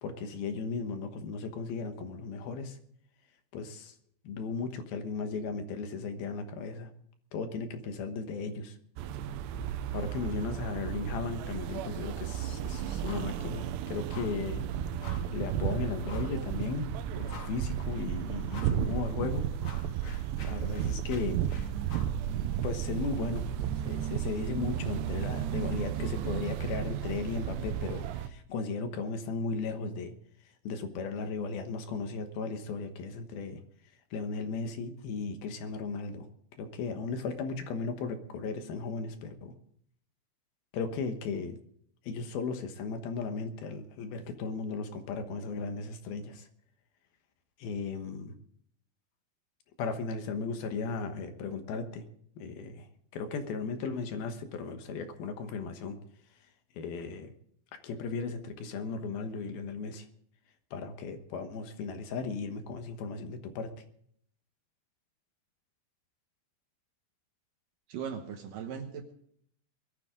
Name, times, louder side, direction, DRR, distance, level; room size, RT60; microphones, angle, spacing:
voice 1, 0.0-2.8 3.5-3.9 4.2-6.9 7.3-8.8 9.9-14.6 15.3-19.5 20.5-21.4 22.6-23.5 23.8-30.1 30.6-33.6 34.1-36.3 36.6-39.5 40.7-41.6 42.0-46.5 47.6-48.3 49.8-52.1 52.4-52.9 53.1-56.0 56.7-57.3 57.8-60.1 60.7-63.7, left 4 dB, 70° left, 7 dB, 2.9 m, -36 dB
sound 1, 9.0-28.3, right 10 dB, 90° right, 3.0 m, -33 dB
sound 2, 13.0-13.4 13.6-13.8 14.1-14.5 15.0-15.4 16.0-16.4 16.9-17.0 17.3-17.8 18.5-18.8 19.2-22.2, left 4 dB, 45° left, 1.8 m, -48 dB
voice 2, 67.9-69.1, right 7 dB, 65° right, 5 dB, 2.4 m, -38 dB
21.5 x 13.0 x 3.7 m, 0.65 s
omnidirectional pair, 4.8 m